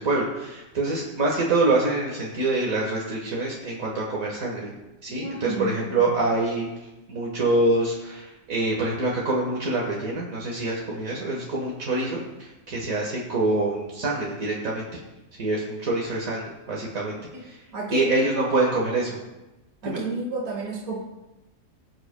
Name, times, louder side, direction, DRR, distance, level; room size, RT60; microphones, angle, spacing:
voice 1, 0.0-4.7 5.0-6.7 7.1-14.9 15.4-17.6 17.9-19.2 19.9-20.0, right 2 dB, 70° right, -3 dB, 1.8 m, -25 dB
voice 2, 5.1-6.1 17.3-17.4 17.7-18.5 19.8-21.0, right 2 dB, 90° right, 0 dB, 1.7 m, -32 dB
19.5 x 7.9 x 2.2 m, 1.0 s
omnidirectional pair, 1.5 m